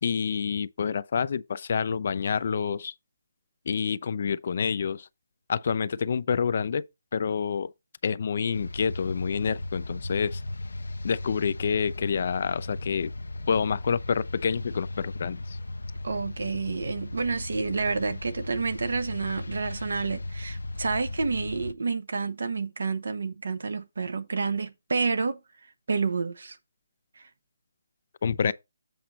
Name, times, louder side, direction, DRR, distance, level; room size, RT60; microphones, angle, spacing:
voice 1, 0.0-2.9 3.7-5.1 5.5-6.8 7.1-7.7 8.0-10.4 11.0-13.1 13.5-15.6 28.2-28.5, left 6 dB, 50° left, 0.5 m, -28 dB
sound 1, 8.5-21.7, left 2 dB, 90° left, 0.8 m, -37 dB
voice 2, 16.0-25.4 25.9-26.6 27.2-27.3, right 4 dB, 75° right, 1.1 m, -29 dB
7.8 x 5.1 x 4.2 m
hypercardioid pair, 155°, 0 cm